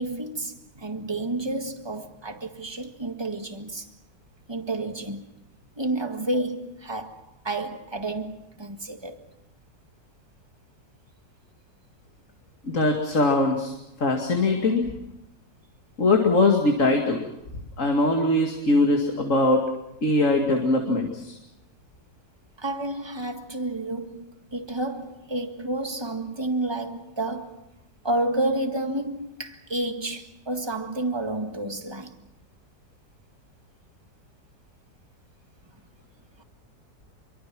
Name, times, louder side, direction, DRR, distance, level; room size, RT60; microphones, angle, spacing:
voice 1, 0.0-3.9 4.5-5.3 5.8-9.2 22.6-27.7 28.0-32.2, right 2 dB, 15° right, 1.7 m, -30 dB
voice 2, 12.6-13.7 14.0-14.9 16.0-17.3 17.8-19.7 20.0-21.4, left 2 dB, 45° left, 2.6 m, -21 dB
27.0 x 23.5 x 6.1 m
omnidirectional pair, 1.9 m